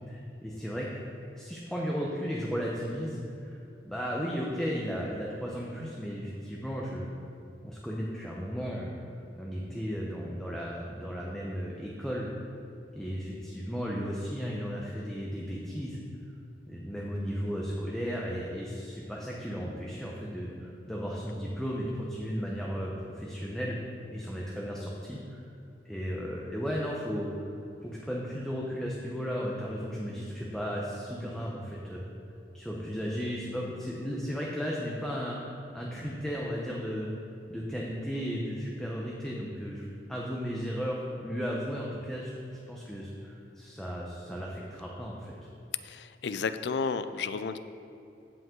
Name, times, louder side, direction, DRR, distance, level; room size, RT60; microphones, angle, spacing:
voice 1, 0.1-0.9 1.3-3.6 3.8-7.1 7.6-8.9 9.4-12.3 12.9-16.0 16.7-23.8 24.1-25.5 25.8-27.5 27.8-32.1 32.5-37.1 37.5-45.3, equal, 5° left, -4 dB, 0.8 m, -35 dB
voice 2, 45.8-47.6, left 5 dB, 70° left, 11 dB, 0.4 m, -32 dB
15.5 x 5.3 x 3.8 m, 2.8 s
head